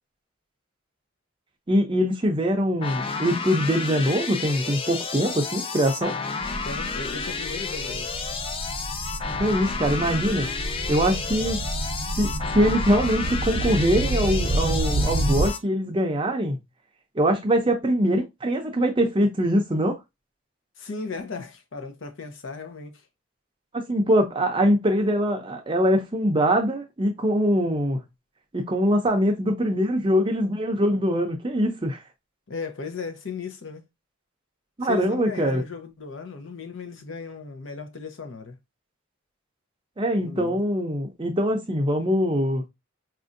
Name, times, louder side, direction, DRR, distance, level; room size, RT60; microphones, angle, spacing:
voice 1, 1.7-6.2 9.4-10.5 10.9-11.6 12.2-16.6 17.2-20.0 23.7-28.0 28.5-32.0 34.8-35.6 40.0-42.6, equal, 25° right, 0.5 m, -23 dB
sound 1, 2.8-15.6, left 5 dB, 25° left, 0.3 m, -31 dB
sound 2, 6.4-15.5, right 1 dB, 90° right, 0.6 m, -29 dB
voice 2, 6.6-8.2 20.8-23.0 32.5-33.8 34.8-38.6 40.2-40.6, left 5 dB, 70° left, 0.7 m, -36 dB
4.2 x 2.6 x 2.5 m
head